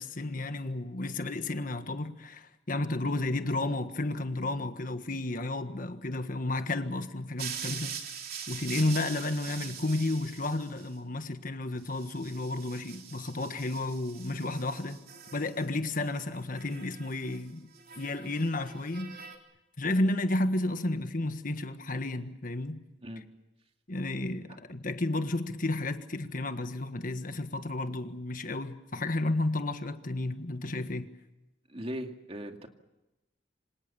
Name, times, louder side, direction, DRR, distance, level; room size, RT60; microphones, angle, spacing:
voice 1, 0.0-8.0 8.5-15.0 15.3-17.7 18.0-19.2 19.8-22.8 23.9-31.1, left 2 dB, 50° left, 1.5 m, -32 dB
sound 1, 7.4-10.9 11.9-15.7 15.9-17.4 17.7-19.4, right 7 dB, 55° right, 3.4 m, -43 dB
voice 2, 31.7-32.7, equal, 35° right, 2.3 m, -38 dB
27.5 x 26.5 x 7.0 m
head